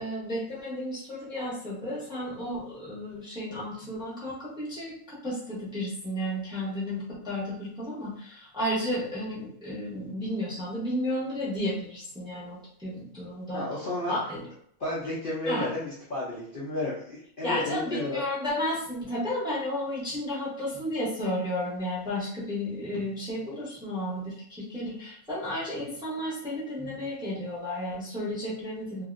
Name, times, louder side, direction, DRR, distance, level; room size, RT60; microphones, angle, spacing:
voice 1, 0.0-13.6 14.1-14.5 15.4-15.7 17.4-29.0, left 1 dB, 5° right, -7 dB, 0.7 m, -33 dB
voice 2, 13.5-14.2 14.8-18.2, left 2 dB, 45° left, -8 dB, 0.7 m, -32 dB
2.8 x 2.6 x 2.5 m, 0.66 s
omnidirectional pair, 1.6 m